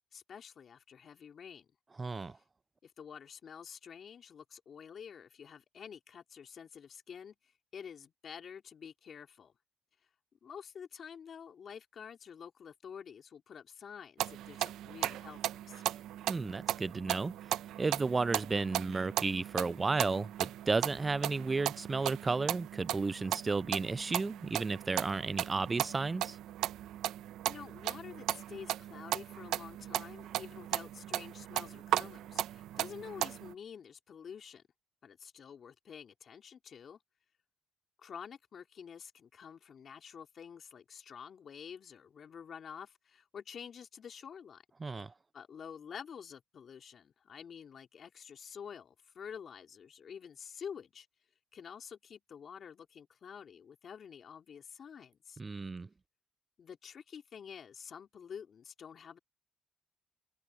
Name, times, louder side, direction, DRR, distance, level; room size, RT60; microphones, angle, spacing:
voice 1, 0.1-1.7 2.3-2.4 2.8-9.5 10.4-16.0 27.5-34.6 35.0-37.0 38.0-44.6 45.3-51.1 51.5-55.4 56.6-59.2, left 7 dB, 55° left, 3.4 m, -49 dB
voice 2, 2.0-2.4 16.3-17.3 17.8-26.4 44.8-45.1 55.4-55.9, right 3 dB, 30° right, 0.3 m, -33 dB
sound 1, 14.2-33.5, right 13 dB, 85° right, 1.1 m, -37 dB
cardioid pair, 90°, 0 cm